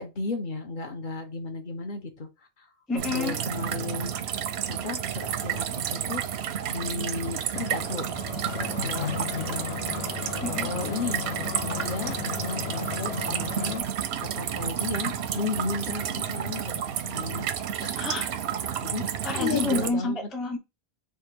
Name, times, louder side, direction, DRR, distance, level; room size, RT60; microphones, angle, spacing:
voice 1, 0.0-2.3 2.6-2.7 3.1-4.1 4.7-6.2 6.7-8.1 8.3-9.8 10.5-11.2 11.6-13.8 14.3-17.5 17.8-18.0 18.8-19.1 19.3-20.3, left 3 dB, 55° left, 0.9 m, -34 dB
voice 2, 2.9-3.4 10.4-10.7 18.0-18.3 19.2-20.6, left 2 dB, ahead, 0.4 m, -29 dB
sound 1, 3.0-19.9, right 9 dB, 85° right, 0.8 m, -31 dB
sound 2, 7.5-13.8, left 8 dB, 90° left, 0.9 m, -35 dB
3.5 x 2.5 x 4.3 m
omnidirectional pair, 1.0 m